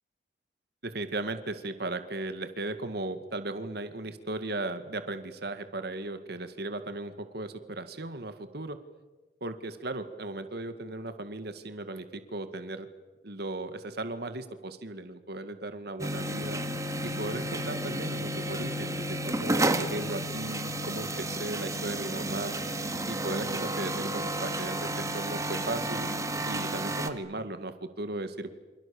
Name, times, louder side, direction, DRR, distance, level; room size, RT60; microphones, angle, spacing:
voice 1, 0.8-8.8 9.4-12.9 13.2-16.6 17.0-22.6 23.1-26.1 26.5-28.5, right 2 dB, 65° right, 9 dB, 2.1 m, -36 dB
sound 1, 16.0-27.1, right 1 dB, 20° right, 2.0 m, -32 dB
29.0 x 27.5 x 7.1 m, 1.2 s
head